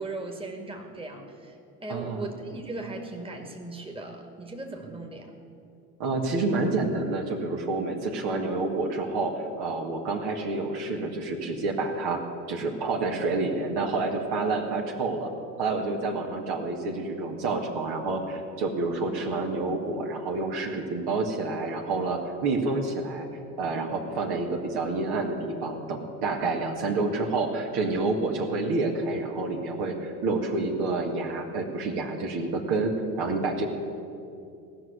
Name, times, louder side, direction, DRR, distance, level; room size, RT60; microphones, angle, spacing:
voice 1, 0.0-5.3, right 2 dB, 10° right, 2 dB, 2.0 m, -38 dB
voice 2, 1.9-2.3 6.0-12.2 12.5-15.3 15.6-23.3 23.6-32.9 33.2-33.7, right 3 dB, 55° right, 1 dB, 2.0 m, -28 dB
17.5 x 6.2 x 9.6 m, 2.5 s
figure-of-eight pair, 65°, 48 cm